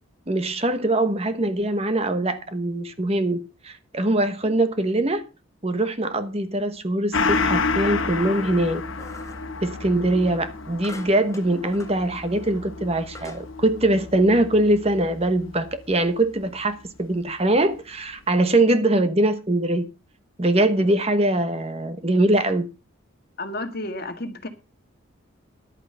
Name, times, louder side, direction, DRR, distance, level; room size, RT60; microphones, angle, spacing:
voice 1, 0.3-3.4 3.6-5.2 5.6-8.8 9.6-19.9 20.4-22.6, right 1 dB, 30° right, 1.1 m, -22 dB
Gong, 7.1-16.1 16.4-16.5, left 4 dB, 70° left, 1.4 m, -30 dB
sound 1, 9.0-9.5 10.8-12.0 12.5-12.6 13.1-13.5, left 2 dB, 15° left, 1.4 m, -43 dB
voice 2, 23.4-24.5, left 1 dB, 45° left, 1.8 m, -31 dB
11.0 x 8.9 x 5.5 m
head